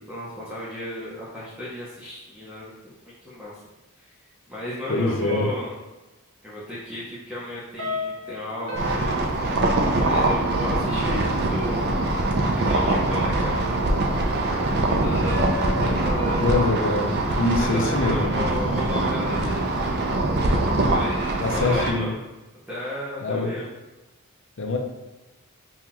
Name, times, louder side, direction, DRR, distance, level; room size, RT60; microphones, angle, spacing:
voice 1, 0.1-3.0 3.2-3.5 4.0-4.1 4.5-5.7 6.4-9.6 9.9-11.9 12.5-14.4 14.9-15.5 15.8-16.6 17.6-20.2 20.9-22.2 22.7-23.7, left 1 dB, 5° right, -8 dB, 0.7 m, -34 dB
voice 2, 4.9-5.5 16.3-17.1 17.4-18.3 21.4-22.1 23.2-23.5 24.6-24.8, left 2 dB, 60° left, 2 dB, 0.6 m, -24 dB
sound 1, 7.8-10.4 15.3-16.8, left 4 dB, 75° right, 0.8 m, -34 dB
sound 2, 8.8-21.9, right 2 dB, 50° right, 0.5 m, -23 dB
5.5 x 2.4 x 2.9 m, 1.1 s
head